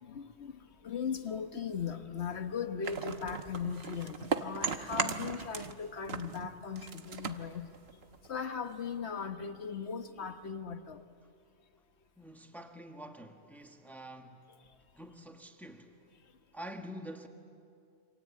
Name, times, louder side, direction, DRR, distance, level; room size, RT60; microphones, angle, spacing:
voice 1, 0.0-7.7 8.3-11.0, left 6 dB, 65° left, 1.4 m, -38 dB
sound 1, 2.8-5.8 6.1-8.4, right 6 dB, 60° right, 1.2 m, -37 dB
voice 2, 12.2-14.5 14.9-16.0 16.5-17.3, equal, ahead, 1.5 m, -47 dB
28.0 x 25.5 x 8.3 m
omnidirectional pair, 1.2 m